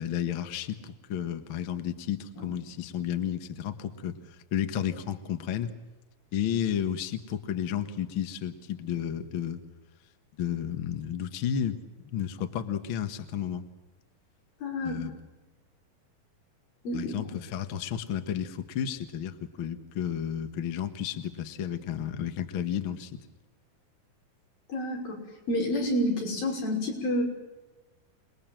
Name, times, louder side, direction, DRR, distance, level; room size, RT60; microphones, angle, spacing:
voice 1, 0.0-4.2 4.5-5.7 6.3-9.6 10.4-11.8 12.1-13.6 14.8-15.1 16.9-23.2, left 9 dB, 50° left, 8 dB, 1.7 m, -32 dB
voice 2, 14.6-15.0 16.8-17.1 24.7-25.2 25.5-27.2, left 1 dB, 90° left, 0 dB, 7.6 m, -29 dB
27.5 x 20.5 x 7.6 m, 1.1 s
omnidirectional pair, 4.0 m